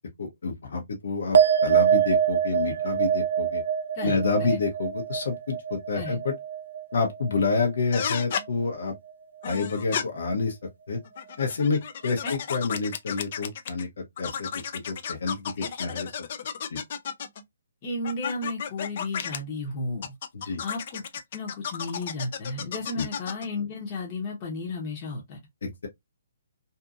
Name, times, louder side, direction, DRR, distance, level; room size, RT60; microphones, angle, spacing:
voice 1, 0.2-3.6 4.0-6.3 6.9-8.9 9.4-10.6 10.9-11.0 11.4-16.1 16.7-16.8 20.3-20.6 22.9-23.1 25.6-25.9, left 4 dB, 65° left, 0.9 m, -28 dB
sound 1, 1.3-8.0 8.3-9.0, right 8 dB, 65° right, 0.5 m, -25 dB
voice 2, 3.9-4.6 5.9-6.2 12.2-12.4 15.6-15.8 17.8-20.1 20.4-21.0 21.3-25.4, left 2 dB, 35° left, 0.9 m, -34 dB
sound 2, 7.9-8.5 9.4-10.0 11.0-13.8 14.2-17.4 18.0-19.4 20.0-23.5, left 7 dB, 50° left, 0.4 m, -33 dB
2.7 x 2.6 x 2.4 m
hypercardioid pair, 145°, 0 cm